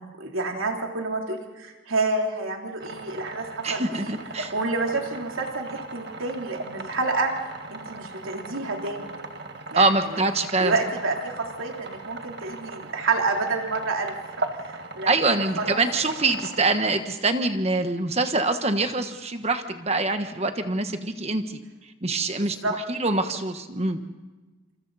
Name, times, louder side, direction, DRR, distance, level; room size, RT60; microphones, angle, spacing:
voice 1, 0.0-4.2 4.5-7.3 7.7-9.1 9.7-10.2 10.6-14.2 14.6-15.1 15.6-15.8 22.3-22.7, right 3 dB, 85° right, 1 dB, 3.6 m, -29 dB
sound 1, 2.8-17.0, right 2 dB, 55° right, 1.7 m, -38 dB
voice 2, 3.6-4.5 9.7-10.7 15.1-21.6 22.0-22.6 22.9-24.0, right 3 dB, 30° right, 7 dB, 1.3 m, -24 dB
27.5 x 26.5 x 4.2 m, 1.2 s
head